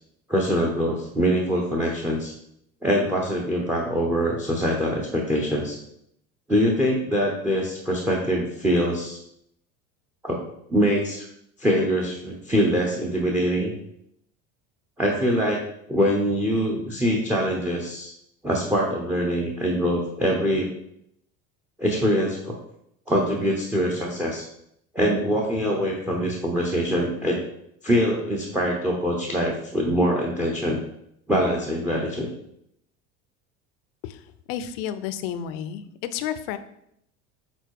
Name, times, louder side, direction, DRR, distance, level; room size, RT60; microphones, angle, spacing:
voice 1, 0.3-2.3 2.8-5.8 6.5-9.2 10.2-10.4 10.7-11.3 11.6-13.7 15.0-15.6 15.9-18.1 18.4-20.7 21.8-22.5 23.1-24.5 24.9-27.4 27.8-30.8 31.3-32.3, equal, 5° right, 0 dB, 0.7 m, -23 dB
voice 2, 34.5-35.8 36.1-36.6, left 9 dB, 70° left, 11 dB, 0.7 m, -31 dB
7.0 x 4.1 x 4.7 m, 0.75 s
cardioid pair, 170°, 30 cm